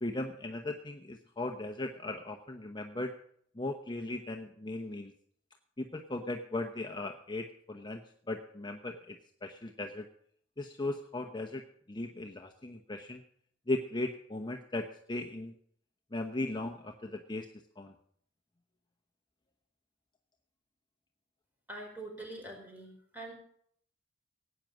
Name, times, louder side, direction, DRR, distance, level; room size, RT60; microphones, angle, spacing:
voice 1, 0.0-3.1 3.6-5.1 5.8-9.2 9.4-10.1 10.6-11.6 11.9-13.2 13.7-15.5 16.1-17.5 17.8-17.9, left 2 dB, 25° left, 4 dB, 0.9 m, -37 dB
voice 2, 21.7-23.3, right 2 dB, 10° right, 1 dB, 4.6 m, -44 dB
17.0 x 9.2 x 6.2 m, 0.65 s
head